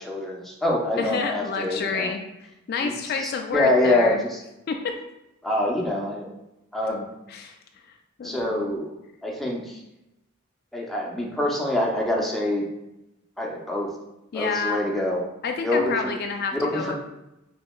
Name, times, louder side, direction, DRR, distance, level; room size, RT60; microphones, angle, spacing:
voice 1, 0.0-2.1 2.8-2.9 3.2-4.4 5.4-6.3 6.7-7.1 8.2-8.9 9.2-9.8 10.7-12.7 13.4-13.9 14.3-15.2 15.6-16.2 16.5-17.0, left 1 dB, ahead, -3 dB, 0.6 m, -25 dB
voice 2, 1.0-4.2 4.7-4.9 7.3-7.5 8.2-8.6 14.3-14.8 15.4-17.0, left 5 dB, 50° left, 4 dB, 0.3 m, -29 dB
5.6 x 2.9 x 2.3 m, 0.93 s
head